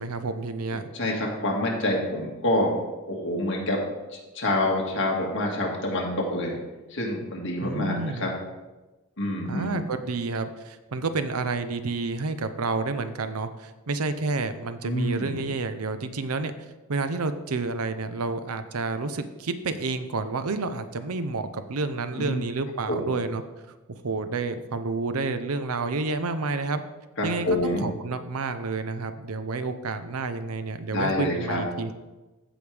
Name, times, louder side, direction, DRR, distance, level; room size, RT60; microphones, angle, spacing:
voice 1, 0.0-0.9 7.6-8.3 9.5-16.5 16.9-23.4 23.9-26.8 27.2-31.9, right 3 dB, 90° right, 10 dB, 0.7 m, -30 dB
voice 2, 0.9-2.7 3.1-3.8 4.3-6.6 6.9-8.3 9.2-9.8 14.8-15.4 22.2-22.4 22.9-23.1 27.2-27.9 30.9-31.6, left 1 dB, 60° left, -1 dB, 1.9 m, -27 dB
15.0 x 5.1 x 3.4 m, 1.1 s
head